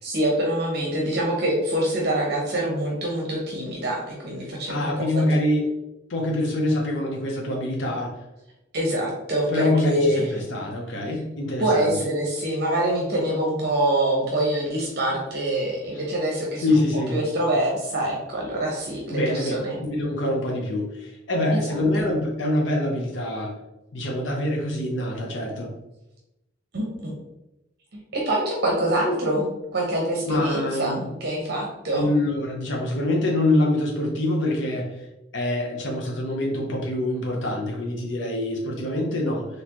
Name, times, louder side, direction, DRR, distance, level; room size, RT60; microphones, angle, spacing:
voice 1, 0.0-5.2 8.7-10.3 11.6-16.7 17.1-19.8 21.5-21.6 21.9-22.1 26.7-27.1 27.9-32.1, right 1 dB, 55° right, -1 dB, 0.9 m, -25 dB
voice 2, 4.7-5.7 6.1-8.1 9.5-11.9 16.6-17.2 19.1-19.6 19.8-23.5 23.9-25.7 30.3-31.1 31.9-34.9 35.3-39.5, left 1 dB, 75° left, 0 dB, 0.8 m, -25 dB
4.2 x 3.2 x 2.9 m, 0.92 s
head